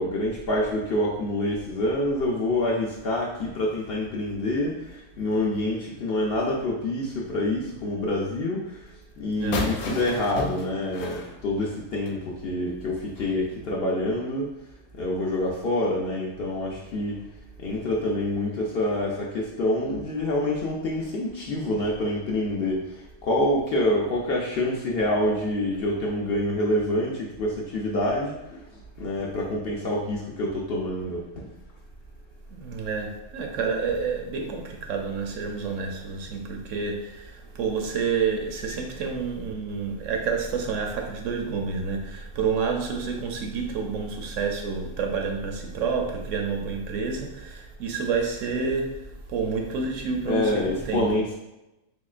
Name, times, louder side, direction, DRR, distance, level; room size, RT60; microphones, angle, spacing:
voice 1, 0.0-4.8 5.2-8.7 9.2-14.5 15.0-17.2 17.6-22.8 23.2-28.3 29.0-31.5 50.3-51.3, left 1 dB, 60° left, -3 dB, 0.7 m, -26 dB
voice 2, 9.4-9.8 32.5-51.1, right 5 dB, 75° right, 2 dB, 0.9 m, -29 dB
sound 1, 9.5-12.2, left 3 dB, 85° left, 1.0 m, -33 dB
3.6 x 3.1 x 2.4 m, 0.94 s
omnidirectional pair, 1.4 m